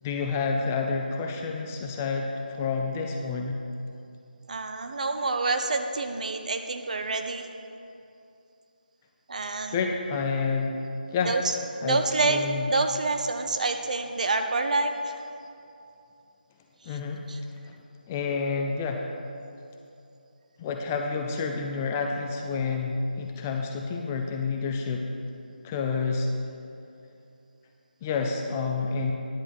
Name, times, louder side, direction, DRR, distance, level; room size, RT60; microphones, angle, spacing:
voice 1, 0.0-3.6 9.7-10.8 11.1-11.3 11.8-12.7 16.8-17.3 17.6-17.8 18.1-19.2 20.6-25.0 25.6-26.3 28.0-29.1, left 4 dB, 15° left, 2 dB, 0.4 m, -29 dB
voice 2, 4.5-7.5 9.3-9.8 11.3-11.4 11.8-15.2 17.3-17.4, right 3 dB, 50° right, 6 dB, 0.8 m, -27 dB
10.5 x 5.1 x 7.5 m, 2.6 s
figure-of-eight pair, 165°, 5 cm